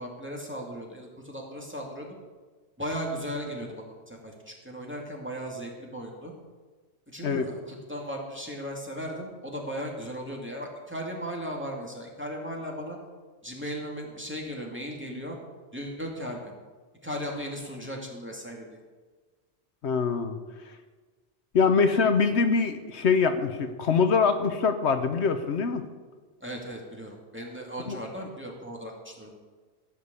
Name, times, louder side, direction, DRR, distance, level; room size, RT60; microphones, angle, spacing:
voice 1, 0.0-2.1 2.8-6.3 7.1-13.0 13.4-15.4 15.7-16.5 17.0-18.8 26.4-29.3, equal, 10° right, -1 dB, 2.4 m, -37 dB
voice 2, 19.8-20.4 21.5-25.8 27.9-28.0, left 5 dB, 75° left, 8 dB, 1.2 m, -24 dB
15.5 x 6.6 x 8.3 m, 1.4 s
omnidirectional pair, 1.2 m